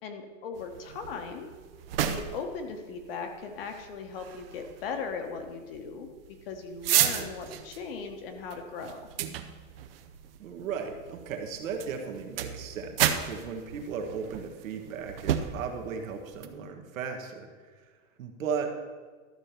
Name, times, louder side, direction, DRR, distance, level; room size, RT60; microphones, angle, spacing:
voice 1, 0.0-1.5 2.0-6.1 6.5-9.0, left 5 dB, 40° left, 5 dB, 1.1 m, -38 dB
sound 1, 0.5-16.5, right 10 dB, 45° right, 0.6 m, -34 dB
voice 2, 10.4-17.5 17.8-17.9 18.2-18.8, right 6 dB, 70° right, 3 dB, 1.6 m, -36 dB
12.5 x 4.4 x 6.8 m, 1.5 s
supercardioid pair, 170°, 42 cm